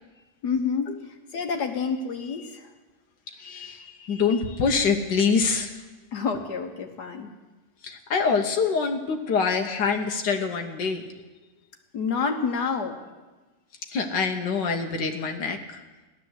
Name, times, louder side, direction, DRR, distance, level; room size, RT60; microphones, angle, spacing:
voice 1, 0.4-2.7 6.1-7.3 11.9-13.0, left 5 dB, 70° left, 4 dB, 1.7 m, -28 dB
voice 2, 3.4-5.7 7.8-11.0 13.9-15.8, left 5 dB, 90° left, 4 dB, 1.7 m, -25 dB
15.5 x 11.0 x 8.0 m, 1.2 s
omnidirectional pair, 1.8 m